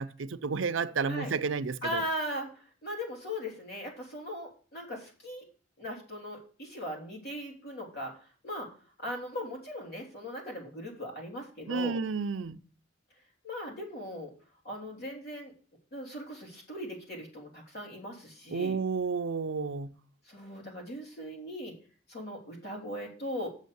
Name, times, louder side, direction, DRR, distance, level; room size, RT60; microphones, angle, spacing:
voice 1, 0.0-2.0 11.7-12.6 18.5-19.9, right 5 dB, 85° right, 0.6 m, -31 dB
voice 2, 1.8-2.5 2.8-5.4 5.8-8.7 9.0-12.0 13.4-14.3 14.6-15.5 15.9-18.8 20.2-21.7 22.1-23.5, equal, 55° left, 3.4 m, -39 dB
7.5 x 6.4 x 6.9 m
head